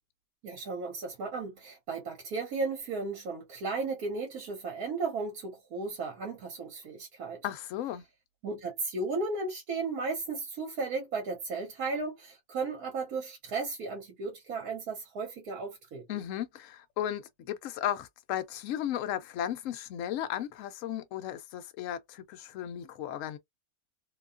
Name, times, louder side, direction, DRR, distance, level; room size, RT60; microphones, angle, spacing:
voice 1, 0.4-7.4 8.4-16.0, right 3 dB, 75° right, 1.3 m, -35 dB
voice 2, 7.4-8.0 16.1-23.4, left 11 dB, 70° left, 0.9 m, -35 dB
2.8 x 2.3 x 2.4 m
omnidirectional pair, 1.6 m